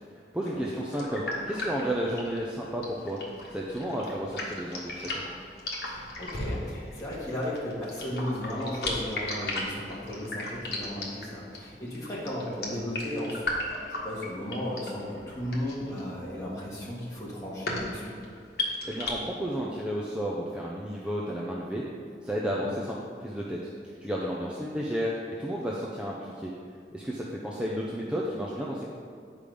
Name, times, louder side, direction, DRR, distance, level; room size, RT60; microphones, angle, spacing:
voice 1, 0.3-3.2 3.5-5.2 18.8-21.8 22.2-23.6 24.0-26.5 26.9-28.9, equal, 5° right, -4 dB, 0.6 m, -32 dB
sound 1, 0.9-19.1, left 2 dB, 60° left, 1.5 m, -36 dB
voice 2, 5.8-13.5 14.0-18.1 22.4-22.6, left 1 dB, 20° left, -7 dB, 1.7 m, -35 dB
8.7 x 5.0 x 5.2 m, 2.4 s
head